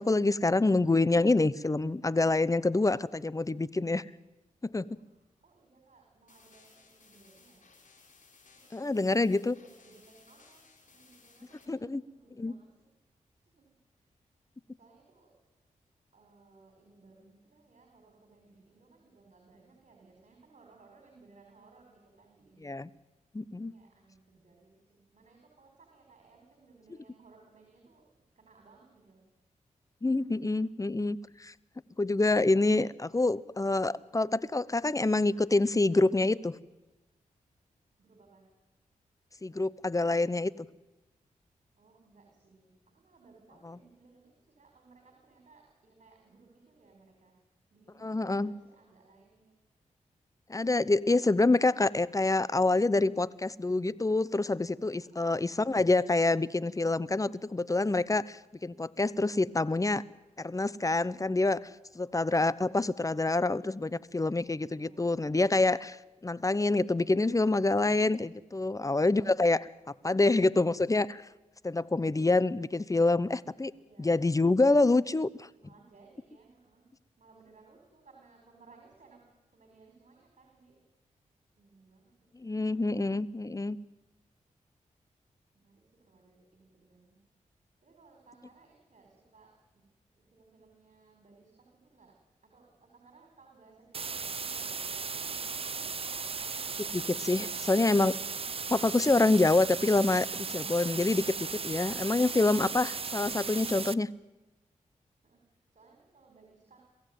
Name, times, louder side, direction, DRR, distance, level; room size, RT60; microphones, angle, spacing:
voice 1, 0.0-4.0 4.7-5.0 8.7-9.6 11.7-12.0 12.4-12.5 22.6-22.9 23.3-23.7 30.0-31.5 32.0-36.6 39.4-40.5 48.0-48.5 50.5-60.0 60.4-61.7 61.9-69.7 70.0-71.3 71.6-73.7 74.0-75.5 82.3-83.8 96.8-98.2 98.7-104.1, left 2 dB, 25° left, 20 dB, 0.8 m, -27 dB
voice 2, 5.0-7.6 8.5-12.9 13.5-13.6 14.7-15.3 16.1-22.8 23.5-29.2 36.5-36.6 38.0-38.5 41.8-47.4 47.7-49.6 55.0-55.8 62.0-62.4 64.7-65.1 66.3-66.5 73.8-74.2 75.6-76.9 77.2-80.8 81.5-82.3 82.7-82.8 83.1-83.3 85.5-87.2 87.8-89.8 90.1-92.1 92.4-95.2 105.2-105.4 105.7-106.8, right 3 dB, 60° right, 1 dB, 5.1 m, -61 dB
sound 1, 6.3-11.7, left 4 dB, 65° left, 4.9 m, -60 dB
sound 2, 93.9-103.9, right 5 dB, 45° right, 0.7 m, -36 dB
22.5 x 15.5 x 9.3 m, 1.1 s
cardioid pair, 50°, 14 cm